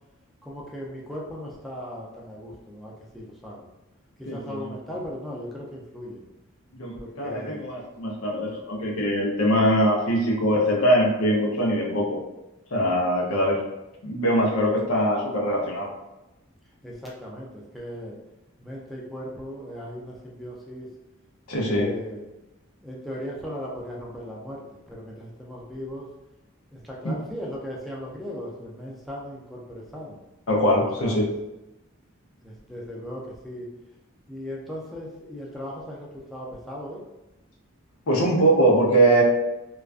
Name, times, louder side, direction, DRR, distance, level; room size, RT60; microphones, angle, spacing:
voice 1, 0.4-3.7 4.2-6.2 6.9-7.7 16.8-18.2 18.6-20.9 21.7-22.3 22.8-26.1 26.7-30.2 31.0-31.3 32.4-33.7 34.3-37.0, equal, ahead, -5 dB, 0.3 m, -37 dB
voice 2, 4.3-4.7 6.7-12.2 12.7-13.6 14.0-15.9 21.5-21.9 27.0-27.1 30.5-31.3 38.1-39.2, right 1 dB, 85° left, -1 dB, 0.6 m, -22 dB
2.3 x 2.2 x 2.4 m, 0.97 s
head